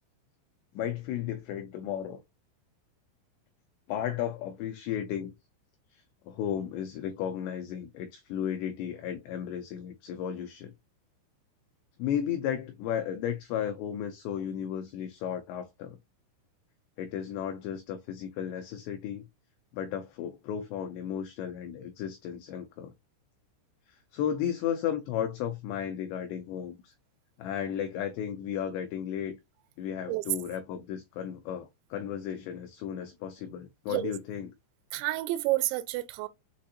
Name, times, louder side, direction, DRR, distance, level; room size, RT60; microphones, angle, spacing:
voice 1, 0.8-2.2 3.9-5.3 5.9-10.7 12.0-16.0 17.0-19.2 19.7-22.9 23.9-26.9 27.4-29.4 29.8-34.5, left 9 dB, 85° left, 2.4 m, -34 dB
voice 2, 34.9-36.3, right 17 dB, 85° right, 2.6 m, -29 dB
7.3 x 2.5 x 2.7 m
omnidirectional pair, 5.8 m